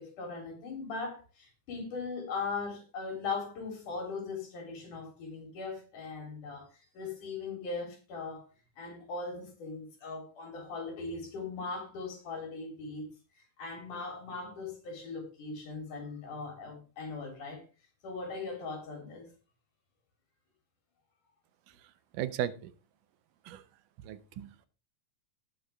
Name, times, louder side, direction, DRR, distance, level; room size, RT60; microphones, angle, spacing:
voice 1, 0.0-6.7 6.9-8.5 8.8-13.1 13.6-17.6 18.0-19.3, left 4 dB, 75° left, 5.0 m, -39 dB
voice 2, 22.1-22.7 23.5-23.6 24.0-24.5, right 11 dB, 80° right, 2.4 m, -35 dB
18.5 x 6.4 x 3.5 m
omnidirectional pair, 3.7 m